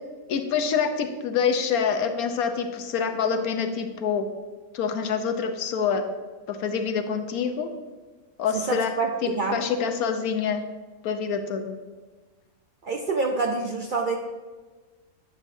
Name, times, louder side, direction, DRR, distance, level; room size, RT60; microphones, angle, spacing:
voice 1, 0.3-4.3 4.7-6.1 6.5-7.7 8.4-8.9 9.2-10.6 11.0-11.8, left 6 dB, 80° left, 6 dB, 1.2 m, -26 dB
voice 2, 8.5-9.6 12.8-14.2, right 4 dB, 75° right, 2 dB, 0.4 m, -27 dB
9.6 x 7.5 x 2.7 m, 1.3 s
omnidirectional pair, 1.5 m